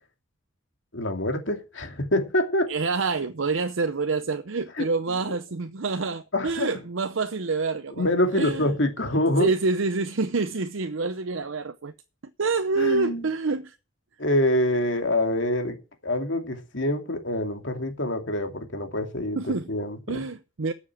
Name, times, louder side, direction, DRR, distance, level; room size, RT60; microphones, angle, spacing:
voice 1, 0.9-2.7 4.8-4.9 6.3-6.7 8.0-9.5 12.8-13.3 14.2-15.8 16.0-20.2, left 1 dB, 65° left, 2.6 m, -25 dB
voice 2, 2.7-8.1 8.3-8.7 9.4-11.9 12.4-13.8 19.3-19.7 20.1-20.7, right 4 dB, 70° right, 0.7 m, -27 dB
12.5 x 7.3 x 7.6 m
head